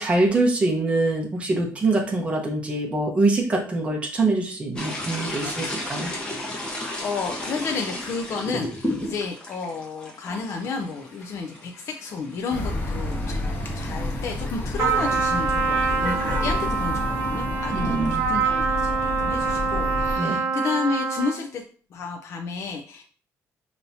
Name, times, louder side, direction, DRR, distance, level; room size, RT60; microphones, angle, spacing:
voice 1, 0.0-6.1 17.7-18.3 20.2-20.4, right 2 dB, 20° right, 0 dB, 1.1 m, -24 dB
sound 1, 4.8-16.8, left 1 dB, 15° left, 1.1 m, -35 dB
voice 2, 6.7-13.4 13.8-18.0 18.3-21.6 21.9-23.0, left 4 dB, 50° left, 2 dB, 0.5 m, -31 dB
sound 2, 12.5-20.1, left 2 dB, 35° left, 0.9 m, -30 dB
Trumpet, 14.8-21.5, right 5 dB, 70° right, 0.8 m, -25 dB
5.4 x 2.9 x 2.7 m, 0.42 s
cardioid pair, 135°, 6 cm